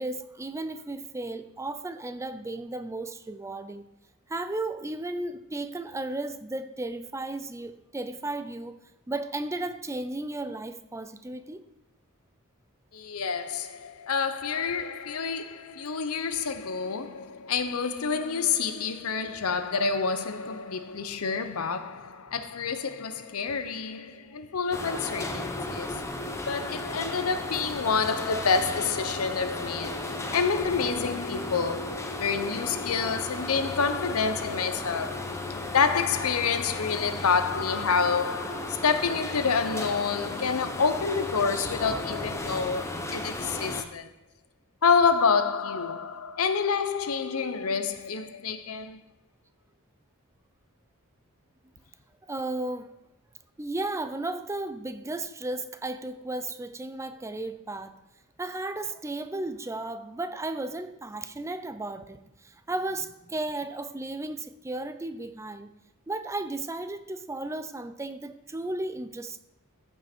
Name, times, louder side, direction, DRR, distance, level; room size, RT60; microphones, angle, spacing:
voice 1, 0.0-3.8 4.3-8.8 9.1-11.6 52.3-52.9 53.6-58.0 58.4-65.7 66.1-69.4, right 2 dB, 15° right, 0.5 m, -34 dB
voice 2, 12.9-26.1 26.5-35.4 35.7-44.1 44.8-49.0, left 5 dB, 80° left, 0.8 m, -28 dB
sound 1, 24.7-43.8, left 2 dB, 15° left, 0.8 m, -35 dB
14.5 x 5.5 x 4.4 m
head